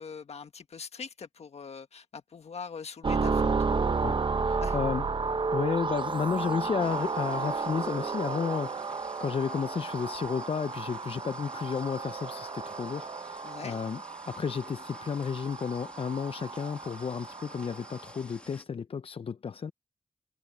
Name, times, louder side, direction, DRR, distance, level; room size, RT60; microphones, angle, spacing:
voice 1, 0.0-3.5 4.6-4.8 13.4-13.8, left 5 dB, 80° left, 1.5 m, -42 dB
sound 1, 3.0-18.1, right 4 dB, 50° right, 0.8 m, -32 dB
voice 2, 4.0-5.1 5.5-19.7, left 6 dB, 60° left, 0.5 m, -32 dB
sound 2, 6.8-18.6, left 1 dB, 10° left, 2.2 m, -51 dB
cardioid pair, 50°, 11 cm